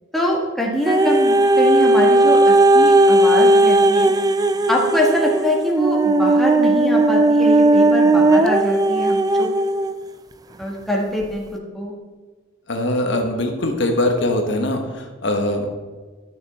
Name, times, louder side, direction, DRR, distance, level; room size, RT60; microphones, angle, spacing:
voice 1, 0.1-4.1 4.7-9.5 10.6-11.9, equal, ahead, -3 dB, 1.5 m, -23 dB
sound 1, 0.8-9.9 10.6-10.7, right 2 dB, 20° right, 0.4 m, -16 dB
voice 2, 12.7-15.7, left 1 dB, 65° left, 3 dB, 1.2 m, -22 dB
12.0 x 6.9 x 4.3 m, 1.4 s
head